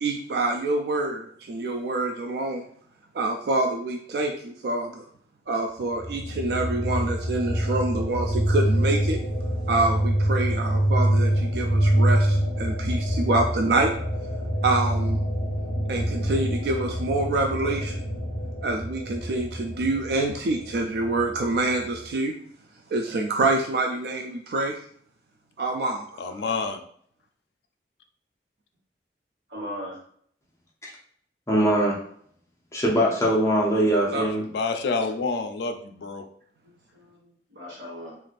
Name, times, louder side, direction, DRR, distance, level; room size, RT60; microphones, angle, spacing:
voice 1, 0.0-2.6 3.1-5.0 5.5-9.2 9.7-13.9 14.6-15.2 15.9-18.0 18.6-22.3 22.9-24.8 25.6-26.2 34.1-34.3, right 2 dB, 65° right, 3 dB, 0.3 m, -26 dB
sound 1, 5.9-22.1, right 1 dB, 30° right, 0.9 m, -26 dB
voice 2, 26.2-26.8 34.4-36.2, left 4 dB, 70° left, 7 dB, 0.4 m, -28 dB
voice 3, 29.5-30.0 36.6-38.2, equal, 85° right, -4 dB, 1.4 m, -39 dB
voice 4, 31.5-32.0 32.7-34.4, right 1 dB, 15° left, -4 dB, 0.6 m, -21 dB
3.2 x 2.5 x 2.4 m, 0.62 s
head